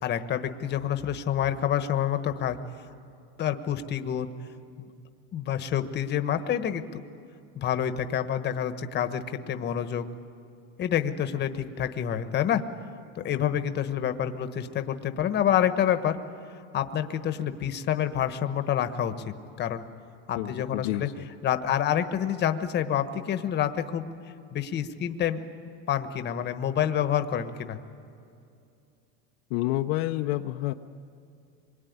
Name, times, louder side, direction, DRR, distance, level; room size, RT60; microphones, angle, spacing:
voice 1, 0.0-2.6 3.4-4.3 4.8-4.9 5.3-6.9 7.5-10.0 10.8-12.6 13.1-16.2 16.7-19.8 20.3-21.1 21.4-24.1 24.5-25.4 25.9-27.8, left 9 dB, 30° left, 9 dB, 1.2 m, -28 dB
voice 2, 20.4-21.2 29.5-30.7, left 16 dB, 65° left, 5 dB, 0.9 m, -29 dB
26.0 x 22.5 x 9.5 m, 2.5 s
supercardioid pair, 145°, 34 cm